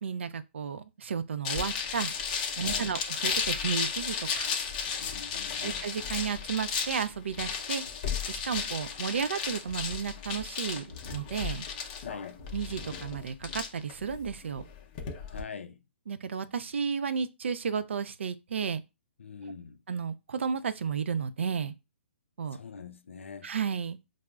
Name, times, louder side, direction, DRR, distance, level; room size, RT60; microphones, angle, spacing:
voice 1, 0.0-2.1 2.6-4.5 5.6-7.8 8.3-11.7 12.5-14.6 16.1-18.8 19.9-21.7 22.4-22.6 23.4-24.0, right 6 dB, 75° right, 0.4 m, -33 dB
sound 1, 1.4-15.4, left 6 dB, 35° left, 0.6 m, -34 dB
voice 2, 2.6-3.0 5.0-5.8 12.0-12.4 15.3-15.8 19.2-19.8 22.5-23.5, left 5 dB, 85° left, 0.3 m, -43 dB
4.8 x 2.0 x 2.2 m
hypercardioid pair, 140°, 7 cm